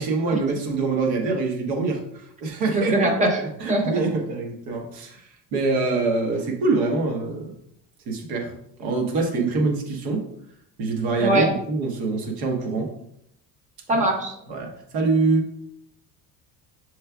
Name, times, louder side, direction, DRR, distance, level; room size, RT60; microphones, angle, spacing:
voice 1, 0.0-3.3 3.6-5.2 5.5-7.5 8.1-8.5 8.8-10.3 10.8-12.9 13.9-14.0 14.5-15.5, right 3 dB, 80° right, 2 dB, 1.1 m, -25 dB
voice 2, 2.7-3.4 3.7-4.0 11.2-11.5 13.9-14.3, right 1 dB, 20° right, 3 dB, 0.7 m, -21 dB
6.7 x 3.1 x 2.3 m, 0.76 s
cardioid pair, 150°, 36 cm